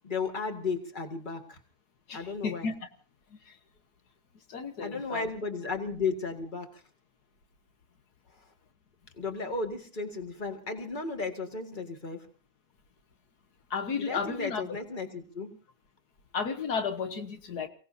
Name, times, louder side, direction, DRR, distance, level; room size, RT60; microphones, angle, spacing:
voice 1, 0.0-1.6 2.1-2.7 4.8-6.7 9.2-12.2 14.0-15.5, left 4 dB, 30° left, 4 dB, 2.1 m, -34 dB
voice 2, 2.1-2.7 3.5-3.6 4.5-5.3 13.7-14.8 16.3-17.7, left 5 dB, 75° left, 6 dB, 1.7 m, -33 dB
29.5 x 17.5 x 2.7 m, 0.39 s
omnidirectional pair, 1.7 m